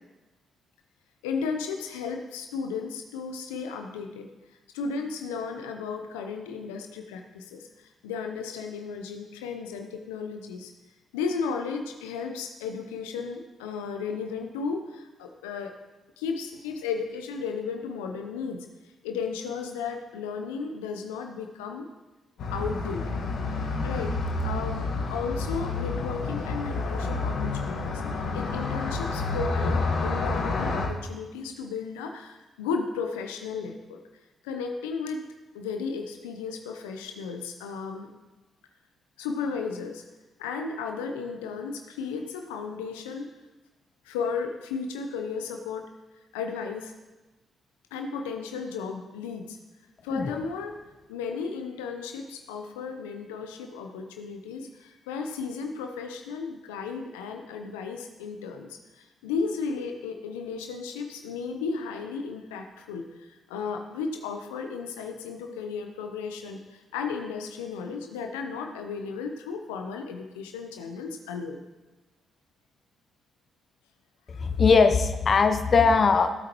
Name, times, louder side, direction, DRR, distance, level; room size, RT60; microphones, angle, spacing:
voice 1, 1.2-4.3 4.7-10.7 11.1-15.7 16.2-18.7 19.0-21.9 22.5-24.1 24.4-28.0 28.3-34.0 34.4-35.2 35.5-38.1 39.2-40.0 40.4-43.3 44.0-45.8 46.3-46.9 47.9-49.6 50.0-50.8 51.1-71.6 74.3-74.4, left 5 dB, 85° left, 4 dB, 0.8 m, -34 dB
sound 1, 22.4-30.9, left 3 dB, 70° left, 1.6 m, -29 dB
voice 2, 74.3-76.3, left 5 dB, 50° left, 8 dB, 0.7 m, -20 dB
16.0 x 8.4 x 3.0 m, 1.1 s
hypercardioid pair, 40°, 0 cm